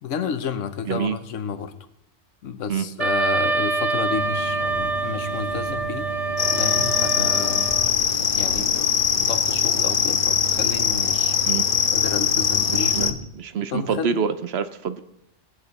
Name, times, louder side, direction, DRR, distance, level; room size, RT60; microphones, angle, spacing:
voice 1, 0.0-1.7 2.4-7.7 8.2-8.9 9.2-11.4 11.9-13.2 13.7-14.3, left 7 dB, 80° left, 10 dB, 1.2 m, -31 dB
Wind instrument woodwind instrument, 3.0-7.9, right 3 dB, 35° right, 0.9 m, -26 dB
sound 1, 4.1-13.1, right 2 dB, 90° right, 4.7 m, -35 dB
sound 2, 6.4-13.1, left 8 dB, 50° left, 0.8 m, -22 dB
voice 2, 12.7-15.0, right 7 dB, 65° right, 11 dB, 0.9 m, -26 dB
18.0 x 8.2 x 4.1 m, 0.85 s
omnidirectional pair, 1.3 m